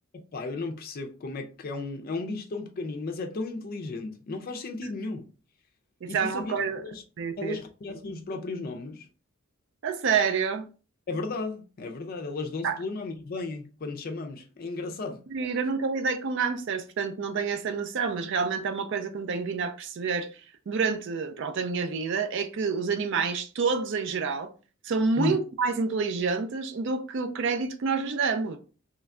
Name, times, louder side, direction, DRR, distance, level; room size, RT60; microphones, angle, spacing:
voice 1, 0.3-5.3 6.1-6.5 6.9-7.0 7.4-9.1 11.1-15.2 25.2-25.4, left 3 dB, 45° left, 0.4 m, -34 dB
voice 2, 6.0-6.8 7.2-7.6 9.8-10.6 12.6-12.8 15.3-20.3 20.7-24.5 24.8-28.6, right 5 dB, 60° right, 0.4 m, -28 dB
3.1 x 2.2 x 3.6 m
head